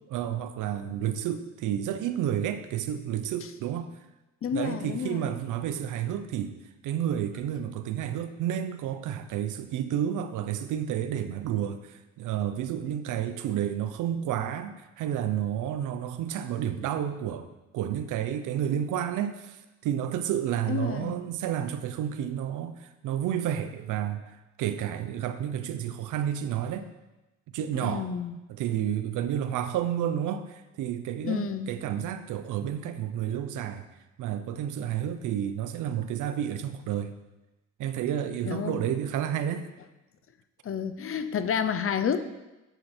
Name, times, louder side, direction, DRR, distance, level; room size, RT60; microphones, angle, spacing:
voice 1, 0.1-3.9 4.5-6.5 6.8-17.5 17.7-26.9 27.5-28.1 28.5-33.9 34.2-37.1 37.8-39.6, right 10 dB, 85° right, 10 dB, 0.7 m, -30 dB
voice 2, 4.4-5.3 20.7-21.2 27.7-28.3 31.2-31.7 38.4-38.9 40.6-42.2, left 7 dB, 45° left, 11 dB, 0.7 m, -30 dB
8.1 x 7.4 x 4.4 m, 1.0 s
cardioid pair, 90°, 30 cm